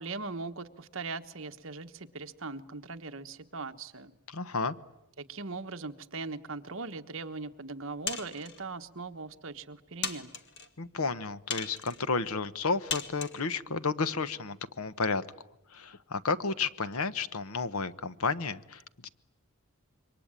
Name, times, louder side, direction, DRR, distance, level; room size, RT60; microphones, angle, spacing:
voice 1, 0.0-4.1 5.2-10.3, right 3 dB, 60° right, 8 dB, 1.3 m, -40 dB
voice 2, 4.3-4.7 10.8-15.2 15.7-19.1, left 4 dB, 75° left, 14 dB, 1.1 m, -32 dB
Dice on Plastic, 8.1-8.6 9.3-9.4 10.0-10.7 11.5-12.0 12.9-13.4, left 6 dB, 50° left, 1.8 m, -36 dB
27.0 x 24.0 x 8.9 m, 0.88 s
head